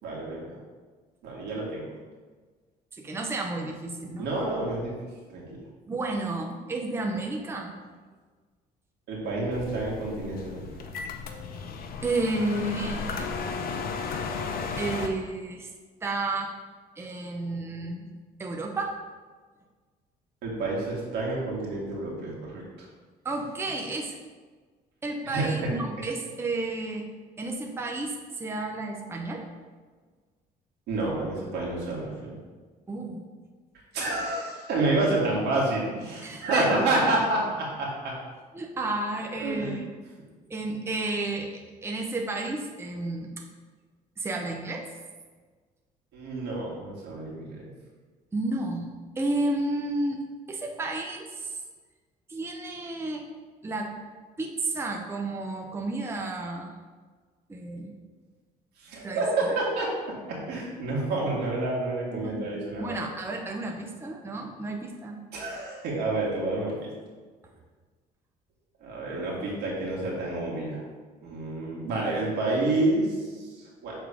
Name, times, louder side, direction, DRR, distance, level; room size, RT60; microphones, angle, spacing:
voice 1, 0.0-0.6 1.2-1.8 4.2-4.9 5.3-5.6 9.1-10.7 20.4-22.9 25.2-25.7 30.9-32.4 33.9-38.1 39.3-39.8 46.1-47.7 58.8-63.0 65.3-66.9 68.8-70.8 71.2-73.9, right 2 dB, 80° right, -4 dB, 1.9 m, -29 dB
voice 2, 3.0-4.3 5.9-7.8 12.0-13.3 14.8-15.7 16.0-16.5 17.0-18.1 18.4-18.9 23.2-24.2 25.0-27.1 27.4-29.5 32.9-33.2 36.2-36.7 38.5-39.9 40.5-43.3 44.2-44.9 48.3-48.9 49.2-50.2 50.5-51.5 52.3-53.3 53.6-54.0 54.4-56.7 57.5-57.9 59.0-59.5 62.1-65.2, right 2 dB, 15° right, 1 dB, 0.7 m, -32 dB
sound 1, 9.5-15.1, left 5 dB, 60° left, 0.7 m, -34 dB
7.0 x 3.7 x 4.9 m, 1.4 s
cardioid pair, 110°, 17 cm